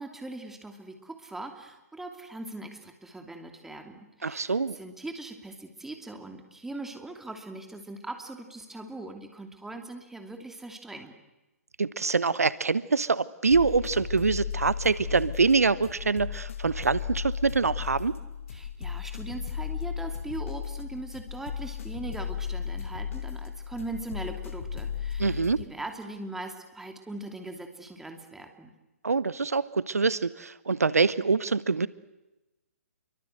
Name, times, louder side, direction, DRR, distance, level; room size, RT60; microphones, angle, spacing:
voice 1, 0.0-11.1 18.5-28.7, right 2 dB, 5° right, 5 dB, 2.7 m, -40 dB
voice 2, 4.2-4.8 11.8-18.1 25.2-25.6 29.0-31.9, right 4 dB, 75° right, 18 dB, 0.9 m, -25 dB
sound 1, 13.5-25.6, left 7 dB, 60° left, 2.1 m, -35 dB
28.0 x 23.5 x 8.0 m, 1.0 s
figure-of-eight pair, 130°, 8 cm